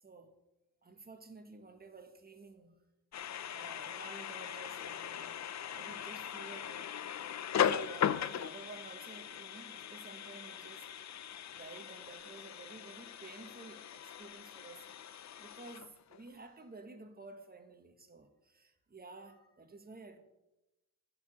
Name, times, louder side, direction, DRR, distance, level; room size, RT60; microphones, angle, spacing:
voice 1, 0.0-0.3 0.8-2.8 3.5-5.4 5.7-7.3 7.6-10.9 11.5-20.2, right 3 dB, 25° right, 6 dB, 1.1 m, -52 dB
sound 1, 3.1-16.3, left 9 dB, 55° left, 0.4 m, -39 dB
11.5 x 4.7 x 6.2 m, 0.97 s
wide cardioid pair, 120°, 35 cm